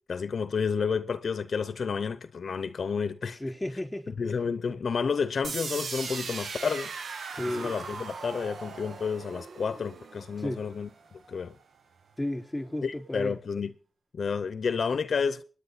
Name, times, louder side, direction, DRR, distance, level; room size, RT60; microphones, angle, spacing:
voice 1, 0.1-3.4 4.2-6.9 7.5-11.5 12.8-13.7 14.1-15.4, left 5 dB, 80° left, 0.7 m, -30 dB
voice 2, 3.3-4.1 4.7-4.8 7.3-7.8 10.4-10.6 12.2-13.4, left 1 dB, 15° left, 4.7 m, -33 dB
sound 1, 5.4-11.4, right 5 dB, 90° right, 1.2 m, -39 dB
28.5 x 10.0 x 4.1 m
cardioid pair, 65°, 0 cm